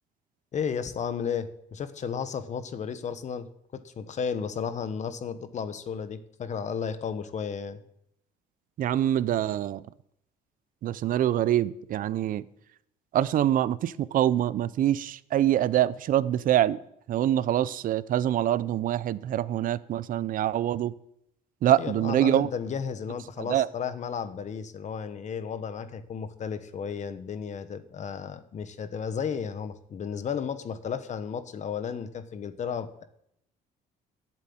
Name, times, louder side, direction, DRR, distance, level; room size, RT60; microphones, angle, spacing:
voice 1, 0.5-7.8 21.8-33.0, left 7 dB, 45° left, 11 dB, 1.2 m, -33 dB
voice 2, 8.8-9.8 10.8-12.4 13.1-16.8 17.1-20.9 21.6-22.5 23.4-23.7, right 12 dB, 55° right, 18 dB, 0.6 m, -25 dB
11.0 x 7.6 x 8.7 m, 0.74 s
cardioid pair, 110°, 17 cm